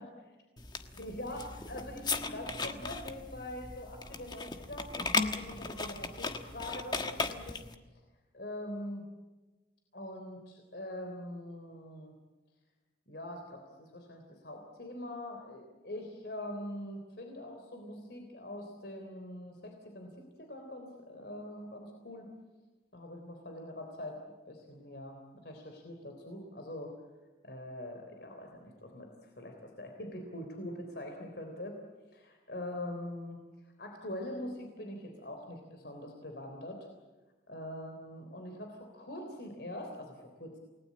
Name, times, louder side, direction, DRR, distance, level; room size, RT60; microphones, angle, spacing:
sound 1, 0.6-7.8, left 3 dB, 25° left, 1.4 m, -37 dB
voice 1, 1.0-7.6 8.3-9.0 9.9-12.1 13.1-20.1 20.4-22.3 22.9-24.2 24.5-26.9 27.4-29.1 29.4-31.8 32.1-33.4 33.8-36.9 37.5-40.6, left 1 dB, 65° left, 3 dB, 3.6 m, -43 dB
29.0 x 19.5 x 8.7 m, 1.2 s
head